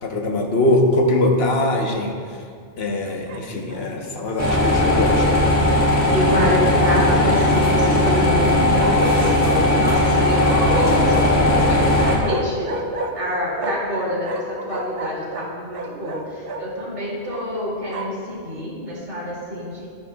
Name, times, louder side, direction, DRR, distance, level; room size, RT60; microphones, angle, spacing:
voice 1, 0.0-2.2 2.8-5.2, left 1 dB, 65° left, 1 dB, 1.2 m, -21 dB
Bark, 3.3-3.9 6.3-7.4 8.8-9.7 10.4-11.5 12.2-14.0 14.2-16.6 17.3-18.2, right 2 dB, 60° right, 0.9 m, -31 dB
sound 1, 4.4-12.2, left 1 dB, 15° left, 1.4 m, -17 dB
voice 2, 6.1-12.7 13.1-19.9, equal, 85° right, -6 dB, 2.9 m, -26 dB
12.5 x 9.5 x 2.3 m, 2.1 s
omnidirectional pair, 1.2 m